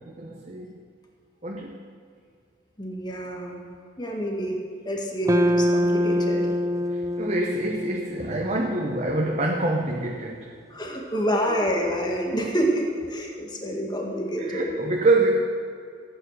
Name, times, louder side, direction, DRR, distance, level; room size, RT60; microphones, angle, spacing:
voice 1, 0.0-0.8 1.4-1.7 6.9-10.5 11.5-11.6 14.4-15.4, right 2 dB, 40° right, 0 dB, 1.0 m, -26 dB
voice 2, 2.8-3.6 4.0-4.6 4.9-6.5 10.7-14.7, equal, 25° left, 0 dB, 2.0 m, -27 dB
sound 1, 5.3-9.6, equal, 20° right, 0.5 m, -25 dB
15.5 x 9.3 x 6.8 m, 2.3 s
head